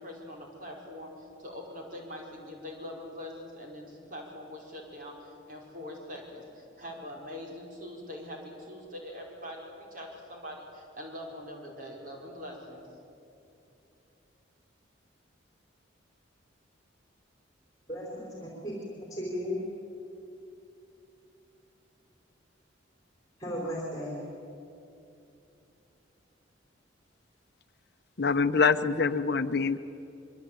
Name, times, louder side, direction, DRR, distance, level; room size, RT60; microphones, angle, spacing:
voice 1, 0.0-12.9, left 1 dB, 45° right, 0 dB, 5.2 m, -43 dB
voice 2, 17.9-18.7 19.1-19.6 23.4-24.2, equal, 20° left, -2 dB, 4.5 m, -35 dB
voice 3, 28.2-29.8, left 4 dB, 55° left, 11 dB, 0.7 m, -25 dB
24.5 x 23.5 x 8.9 m, 2.8 s
head